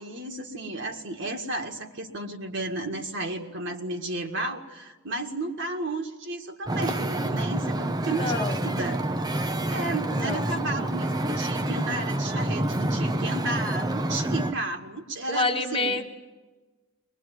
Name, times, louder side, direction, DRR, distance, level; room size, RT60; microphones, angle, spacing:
voice 1, 0.0-9.0 9.7-16.0, right 2 dB, 60° right, 3 dB, 2.0 m, -33 dB
Wind / Ocean, 6.7-14.5, right 1 dB, 20° right, 0.8 m, -28 dB
voice 2, 8.2-8.6 10.1-10.5 15.3-16.1, left 2 dB, 25° left, 4 dB, 1.3 m, -27 dB
22.5 x 21.0 x 9.4 m, 1.2 s
head